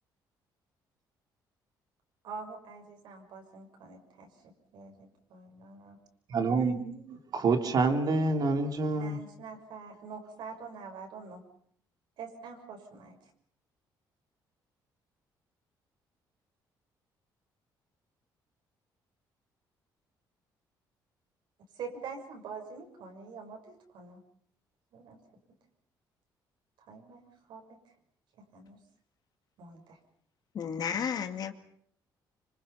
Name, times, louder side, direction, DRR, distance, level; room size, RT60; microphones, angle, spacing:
voice 1, 2.2-6.0 9.0-11.4 12.2-13.2 21.7-24.2 24.9-25.2 26.9-27.2 27.5-27.8 28.5-28.8 29.6-30.0, right 5 dB, 75° right, 3 dB, 6.5 m, -45 dB
voice 2, 6.3-9.2, right 3 dB, 55° right, 5 dB, 3.3 m, -27 dB
voice 3, 30.5-31.5, left 7 dB, 55° left, 7 dB, 2.3 m, -32 dB
26.5 x 25.5 x 5.8 m, 0.64 s
cardioid pair, 115°, 8 cm